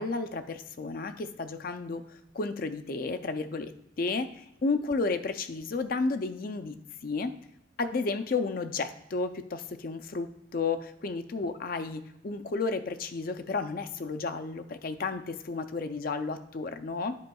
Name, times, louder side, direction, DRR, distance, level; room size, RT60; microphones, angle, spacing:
voice 1, 0.0-3.7 4.0-6.8 7.0-7.3 7.8-17.1, left 3 dB, 45° left, 9 dB, 0.4 m, -32 dB
10.5 x 5.1 x 2.3 m, 0.80 s
head